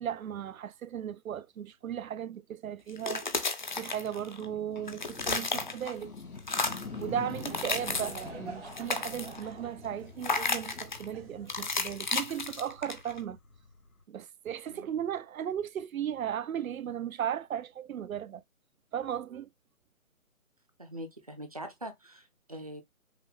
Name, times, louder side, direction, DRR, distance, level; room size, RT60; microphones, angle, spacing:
voice 1, 0.0-3.3 3.8-6.1 7.0-13.4 14.1-18.4 18.9-19.5, right 9 dB, 70° right, 0.6 m, -36 dB
sound 1, 2.9-4.5 4.8-6.0 6.4-6.9 7.3-8.3 8.6-9.5 10.2-11.0 11.5-13.2, left 3 dB, 35° left, 0.5 m, -33 dB
sound 2, 3.6-14.0, left 4 dB, 80° left, 1.7 m, -46 dB
Laughter / Crowd, 6.6-12.3, right 5 dB, 45° right, 0.9 m, -49 dB
voice 2, 20.8-22.8, equal, 25° right, 0.5 m, -43 dB
5.8 x 2.1 x 3.4 m
hypercardioid pair, 160°, 43 cm